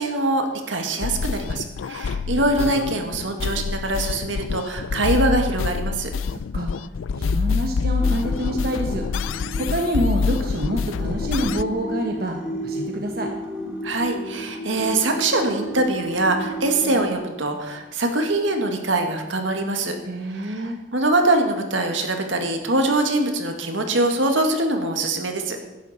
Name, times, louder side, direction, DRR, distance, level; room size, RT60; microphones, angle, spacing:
voice 1, 0.0-6.1 13.8-20.0 20.3-25.6, right 2 dB, 75° right, 4 dB, 1.8 m, -23 dB
sound 1, 1.0-11.6, left 5 dB, 85° left, 0.4 m, -26 dB
voice 2, 6.3-6.7 7.1-9.1 9.6-13.3 20.0-20.8, equal, 50° right, 2 dB, 1.2 m, -27 dB
sound 2, 8.0-17.1, right 1 dB, 5° right, 1.9 m, -33 dB
16.5 x 11.5 x 4.3 m, 1.1 s
head